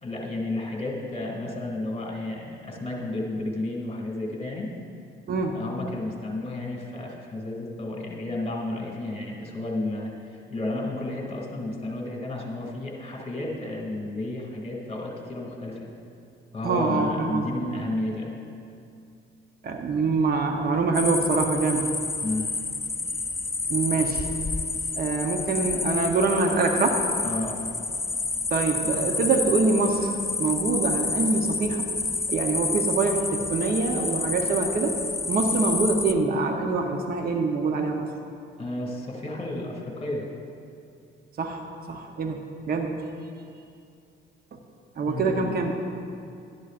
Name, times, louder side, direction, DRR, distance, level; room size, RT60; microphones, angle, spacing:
voice 1, 0.0-4.7 5.5-15.9 16.5-18.3 22.2-22.5 27.2-27.7 38.6-40.2 45.1-45.6, left 2 dB, 30° left, -1 dB, 2.3 m, -32 dB
voice 2, 16.6-17.5 19.6-21.9 23.7-24.3 25.0-27.0 28.5-31.8 32.3-35.0 35.3-38.1 41.4-42.4 42.7-43.0 44.5-44.6 45.0-45.9, right 3 dB, 50° right, 3 dB, 0.9 m, -25 dB
sound 1, 20.9-36.1, left 3 dB, 15° left, 0.4 m, -29 dB
12.0 x 11.0 x 2.5 m, 2.5 s
cardioid pair, 90°, 20 cm